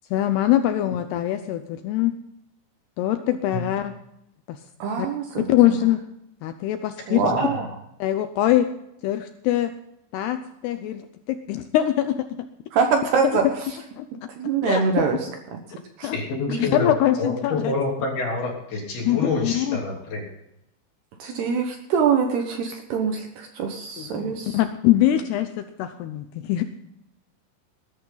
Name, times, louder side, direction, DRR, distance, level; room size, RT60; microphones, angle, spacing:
voice 1, 0.1-2.2 3.0-3.9 4.5-4.6 5.0-5.1 5.4-6.0 6.4-7.2 8.0-8.7 9.0-9.7 10.1-11.0 11.3-12.0 14.0-14.1 14.6-15.0 16.0-16.2 16.6-17.7 19.0-19.8 24.0-26.6, left 13 dB, 85° left, 9 dB, 2.3 m, -23 dB
voice 2, 4.8-5.5 7.1-7.6 12.7-13.4 14.4-15.2 15.5-15.6 16.0-16.1 16.5-16.6 21.4-21.6 21.9-24.6, right 6 dB, 65° right, 3 dB, 3.0 m, -24 dB
voice 3, 7.2-7.6 16.1-16.9 17.2-20.2, left 3 dB, 55° left, -1 dB, 5.1 m, -27 dB
20.0 x 11.0 x 4.0 m, 0.81 s
omnidirectional pair, 5.6 m